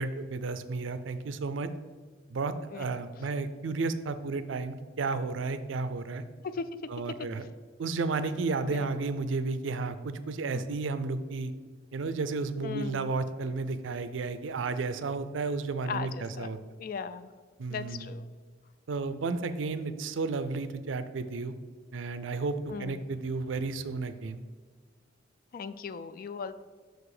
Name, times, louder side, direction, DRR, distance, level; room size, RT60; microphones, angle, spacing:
voice 1, 0.0-1.7 2.3-6.2 6.9-7.5 7.8-11.5 11.9-16.6 17.6-18.1 18.9-21.5 21.9-24.4, right 3 dB, 80° right, 11 dB, 0.5 m, -32 dB
voice 2, 12.6-13.1 15.9-16.5 16.8-17.3 17.7-18.3 22.7-23.1 25.5-26.5, left 5 dB, 50° left, 12 dB, 0.4 m, -37 dB
6.2 x 4.8 x 4.9 m, 1.5 s
head